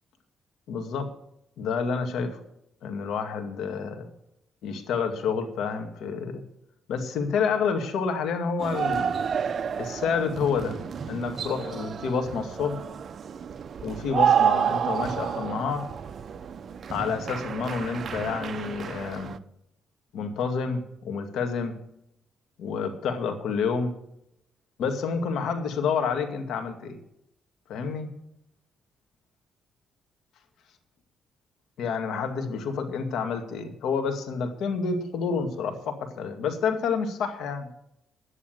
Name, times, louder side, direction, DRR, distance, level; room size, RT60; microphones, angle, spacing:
voice 1, 0.7-1.1 1.6-2.4 2.8-4.1 4.6-6.4 6.9-9.1 9.8-10.8 11.1-12.9 13.8-15.9 16.9-19.4 20.1-21.8 22.6-23.9 24.8-27.0 27.7-28.1 31.8-37.7, left 5 dB, 75° left, 6 dB, 2.1 m, -29 dB
sound 1, 8.6-19.4, right 8 dB, 50° right, 0.7 m, -29 dB
11.0 x 9.9 x 7.9 m, 0.79 s
cardioid pair, 90°, 0 cm